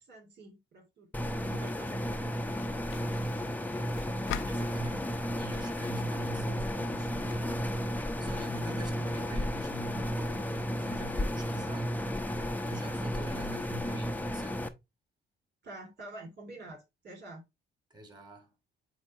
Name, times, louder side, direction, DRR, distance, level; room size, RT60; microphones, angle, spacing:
voice 1, 0.0-4.0 15.6-17.4, right 2 dB, 60° right, 3.2 m, -49 dB
sound 1, 1.1-14.7, equal, 10° left, 0.8 m, -33 dB
sound 2, 1.4-7.5, left 11 dB, 85° left, 0.7 m, -46 dB
voice 2, 4.5-7.7 8.0-12.0 12.7-14.6 17.9-18.5, left 2 dB, 20° right, 3.0 m, -47 dB
8.2 x 2.8 x 4.2 m
cardioid pair, 90°, 20 cm